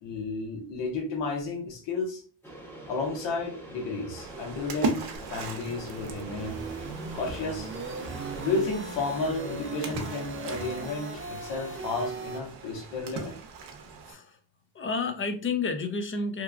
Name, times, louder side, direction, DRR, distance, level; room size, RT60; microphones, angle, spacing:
voice 1, 0.0-2.2 2.9-6.6 7.1-7.7 8.4-13.4, left 3 dB, 70° left, 2 dB, 1.1 m, -32 dB
sound 1, 2.4-8.6, right 1 dB, 5° left, 0.9 m, -45 dB
Splash splatter, 4.2-14.1, right 4 dB, 60° right, 0.7 m, -39 dB
sound 2, 5.1-12.4, right 3 dB, 25° right, 0.6 m, -39 dB
voice 2, 14.1-14.4 14.7-16.4, left 4 dB, 30° left, 7 dB, 0.5 m, -30 dB
2.9 x 2.2 x 2.3 m, 0.40 s
supercardioid pair, 75°, 46 cm